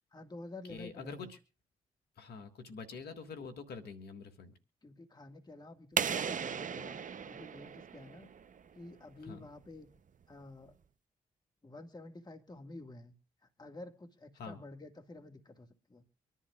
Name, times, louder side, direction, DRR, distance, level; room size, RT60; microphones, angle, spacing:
voice 1, 0.1-1.3 4.8-8.3 8.7-9.9 10.3-10.8 11.6-13.2 13.6-16.0, left 2 dB, 25° left, 5 dB, 1.8 m, -50 dB
voice 2, 0.7-1.4 2.2-4.5 9.2-9.5 14.4-14.6, left 4 dB, 70° left, 6 dB, 1.7 m, -46 dB
sound 1, 6.0-8.6, right 7 dB, 50° right, 0.8 m, -36 dB
25.0 x 11.0 x 2.4 m, 0.37 s
hypercardioid pair, 40°, 17 cm